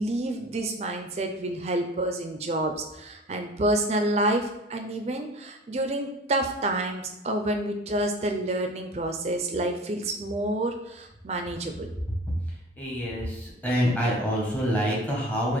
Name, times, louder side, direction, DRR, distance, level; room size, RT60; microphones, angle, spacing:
voice 1, 0.0-11.9, right 1 dB, 35° right, 5 dB, 0.4 m, -28 dB
voice 2, 12.8-15.6, equal, 10° left, -4 dB, 0.8 m, -26 dB
4.1 x 2.5 x 3.1 m, 0.95 s
head